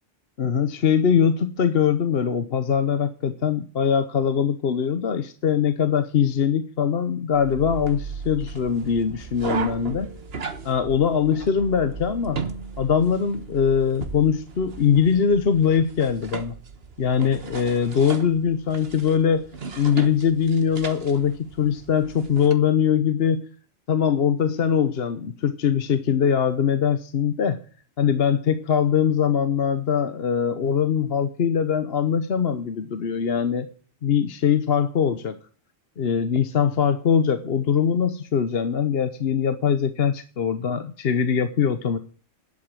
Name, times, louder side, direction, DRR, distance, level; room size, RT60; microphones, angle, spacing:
voice 1, 0.4-10.1 10.6-12.4 12.8-16.5 17.0-19.5 19.8-23.5 23.9-27.6 28.0-33.7 34.0-35.4 36.0-42.0, left 7 dB, 55° left, 9 dB, 1.1 m, -22 dB
sound 1, 7.3-22.5, right 4 dB, 55° right, 1.5 m, -36 dB
11.5 x 8.4 x 7.6 m, 0.42 s
omnidirectional pair, 1.2 m